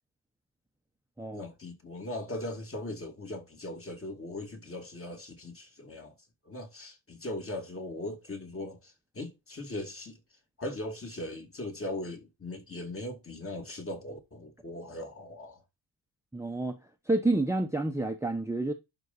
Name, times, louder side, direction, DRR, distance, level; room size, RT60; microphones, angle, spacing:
voice 1, 1.3-6.1 6.5-10.2 10.6-15.6, left 1 dB, 30° left, 2.6 m, -39 dB
voice 2, 16.3-16.8 17.1-18.7, right 2 dB, 5° right, 1.0 m, -29 dB
11.5 x 4.1 x 4.1 m
wide cardioid pair, 130°, 45 cm